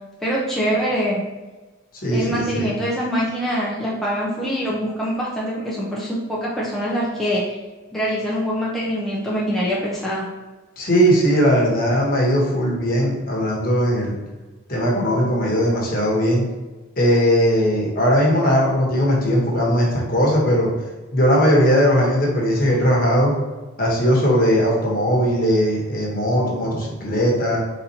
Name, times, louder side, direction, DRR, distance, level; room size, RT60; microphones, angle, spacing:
voice 1, 0.2-1.2 2.1-7.6 7.9-10.3, equal, ahead, -7 dB, 0.6 m, -24 dB
voice 2, 2.0-2.7 10.8-14.2 14.7-16.5 17.0-20.7 21.1-23.3 23.8-27.6, equal, 45° left, -3 dB, 1.2 m, -19 dB
4.2 x 4.1 x 2.8 m, 1.2 s
head